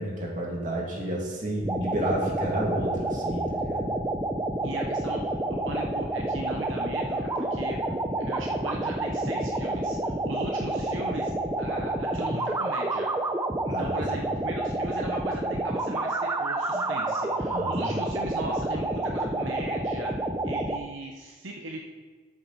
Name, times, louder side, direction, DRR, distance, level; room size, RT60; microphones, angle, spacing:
voice 1, 0.0-3.9 12.3-12.4 13.7-14.0 16.7-16.8 17.4-17.9, right 1 dB, 40° right, -3 dB, 2.4 m, -31 dB
sound 1, 1.6-20.8, right 2 dB, 15° right, 0.5 m, -29 dB
voice 2, 4.6-7.9 8.3-11.3 11.6-13.1 13.6-20.1 20.4-22.0, right 2 dB, 75° right, 0 dB, 0.9 m, -38 dB
13.0 x 7.3 x 4.1 m, 1.3 s
head